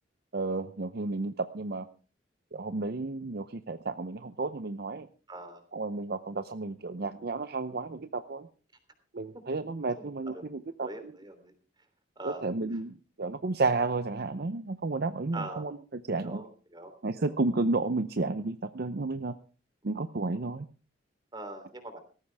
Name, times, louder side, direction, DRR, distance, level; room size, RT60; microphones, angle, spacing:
voice 1, 0.3-1.9 2.5-5.1 5.7-8.4 9.1-10.9 12.2-12.9 13.2-15.7 16.1-16.4 17.0-19.3 19.8-20.6, right 3 dB, 55° right, 11 dB, 0.7 m, -32 dB
voice 2, 5.3-5.6 10.0-10.5 10.8-11.5 12.1-12.8 15.3-15.7 16.1-17.4 21.3-22.0, right 2 dB, 25° right, 7 dB, 3.3 m, -43 dB
18.5 x 14.5 x 3.5 m, 0.36 s
head